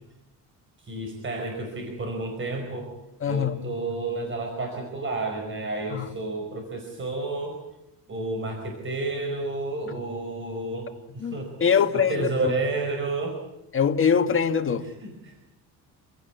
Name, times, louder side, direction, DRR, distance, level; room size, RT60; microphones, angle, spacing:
voice 1, 0.8-2.9 3.3-7.6 8.1-13.4 14.8-15.3, right 2 dB, 30° right, 5.0 m, -31 dB
voice 2, 3.2-3.7 5.9-6.1 11.2-12.3 13.7-14.9, left 7 dB, 35° left, 1.9 m, -23 dB
28.0 x 17.0 x 9.5 m
cardioid pair, 135°, 38 cm